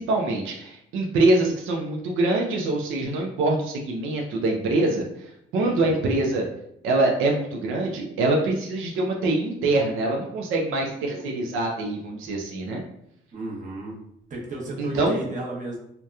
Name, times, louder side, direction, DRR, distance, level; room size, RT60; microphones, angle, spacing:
voice 1, 0.0-6.4 6.8-12.8 14.8-15.2, right 2 dB, 90° right, 0 dB, 0.5 m, -24 dB
voice 2, 5.6-6.0 13.3-14.0 14.3-15.8, right 2 dB, 40° right, -3 dB, 0.8 m, -34 dB
2.8 x 2.1 x 2.3 m, 0.77 s
cardioid pair, 90°, 20 cm